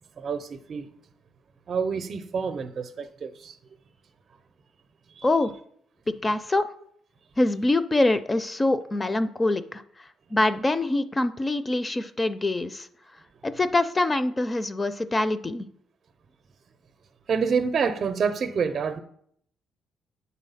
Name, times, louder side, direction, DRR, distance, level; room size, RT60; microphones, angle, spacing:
voice 1, 0.2-0.9 1.7-3.6 5.2-5.3 17.3-19.0, right 6 dB, 50° right, 0.6 m, -27 dB
voice 2, 6.1-6.7 7.4-9.8 10.3-12.9 13.4-15.7, left 2 dB, 20° left, 0.5 m, -24 dB
7.7 x 4.2 x 5.6 m
cardioid pair, 90°, 0 cm